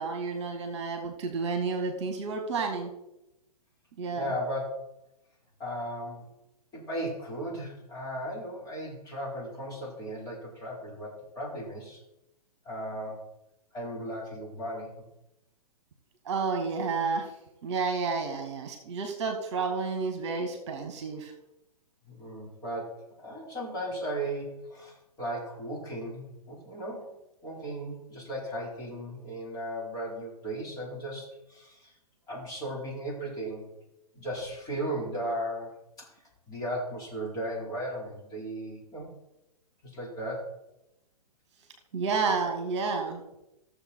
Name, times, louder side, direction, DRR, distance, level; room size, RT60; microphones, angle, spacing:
voice 1, 0.0-2.9 4.0-4.3 16.3-17.3 17.6-21.3 41.9-43.2, right 4 dB, 45° right, 5 dB, 1.7 m, -30 dB
voice 2, 4.1-4.7 5.6-6.3 6.7-12.0 12.6-13.2 13.7-14.9 22.1-27.1 27.4-31.9 32.3-33.7 34.1-35.7 36.0-36.1 36.5-39.1 39.8-40.5, right 1 dB, 20° left, -4 dB, 4.5 m, -36 dB
14.5 x 7.2 x 4.5 m, 0.88 s
figure-of-eight pair, 120°, 20 cm